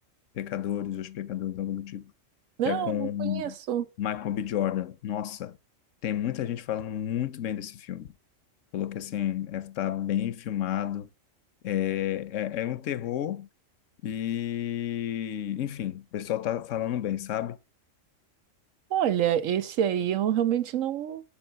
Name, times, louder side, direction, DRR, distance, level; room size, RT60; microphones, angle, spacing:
voice 1, 0.3-2.1 2.6-3.6 4.0-5.6 6.0-8.1 8.7-11.1 11.6-13.5 14.0-17.6, left 11 dB, 75° left, 1.1 m, -31 dB
voice 2, 2.6-3.8 18.9-21.2, right 10 dB, 80° right, 1.2 m, -27 dB
12.0 x 5.7 x 5.6 m
omnidirectional pair, 1.3 m